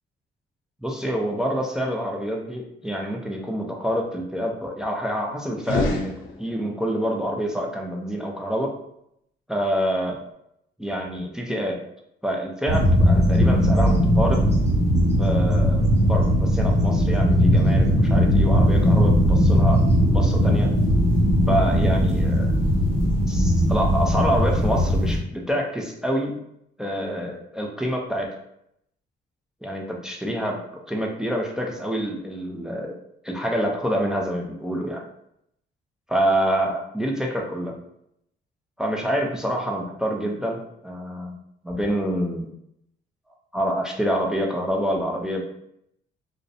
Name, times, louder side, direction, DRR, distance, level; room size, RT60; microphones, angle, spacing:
voice 1, 0.8-6.1 6.4-8.7 9.5-10.2 10.8-11.8 12.2-14.4 15.2-19.8 20.1-20.7 21.5-22.5 23.3-26.3 26.8-28.3 29.6-30.6 30.9-33.0 33.2-35.0 36.1-37.7 38.8-41.4 41.6-42.5 43.5-45.4, equal, 5° right, 0 dB, 0.4 m, -27 dB
sound 1, 5.6-6.9, left 3 dB, 85° left, 0.5 m, -27 dB
sound 2, 12.7-25.2, equal, 35° right, 1.3 m, -19 dB
2.4 x 2.0 x 2.6 m, 0.76 s
cardioid pair, 90°, 20 cm